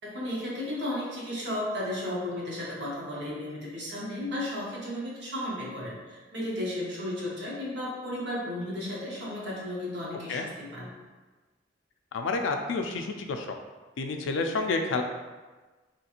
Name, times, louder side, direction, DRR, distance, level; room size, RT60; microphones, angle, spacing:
voice 1, 0.0-10.9, left 1 dB, 65° right, -5 dB, 0.9 m, -34 dB
voice 2, 12.1-13.6 14.0-15.0, left 3 dB, 80° left, 5 dB, 0.3 m, -29 dB
3.0 x 2.9 x 2.4 m, 1.3 s
head